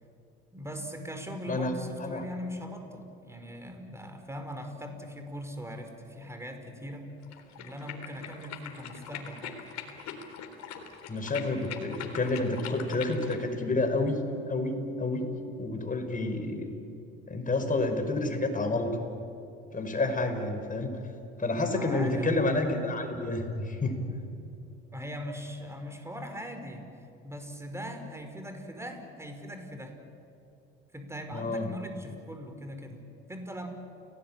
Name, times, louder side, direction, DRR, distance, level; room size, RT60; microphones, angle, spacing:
voice 1, 0.5-7.1 7.6-9.6 21.7-22.3 24.9-26.9 27.2-30.0 30.9-33.0 33.3-33.7, equal, 10° right, 6 dB, 5.1 m, -40 dB
sound 1, 7.2-13.4, left 8 dB, 60° left, 3.8 m, -42 dB
voice 2, 11.1-15.3 15.6-16.7 17.3-19.0 19.7-20.9 21.4-24.0 31.3-31.7, left 2 dB, 25° left, 5 dB, 5.2 m, -29 dB
29.5 x 18.5 x 9.0 m, 2.7 s
hypercardioid pair, 70°, 31 cm